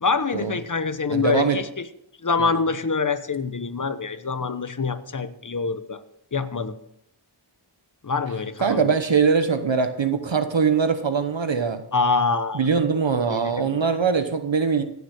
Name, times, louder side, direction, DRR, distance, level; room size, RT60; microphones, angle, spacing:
voice 1, 0.0-1.9 2.2-6.0 6.3-6.7 8.0-8.9 11.9-12.6 13.3-13.8, left 4 dB, 40° left, 10 dB, 1.0 m, -25 dB
voice 2, 1.1-1.6 2.4-2.5 8.6-11.8 12.5-14.8, right 5 dB, 65° right, 8 dB, 1.0 m, -22 dB
16.0 x 7.1 x 6.5 m, 0.76 s
wide cardioid pair, 75°, 49 cm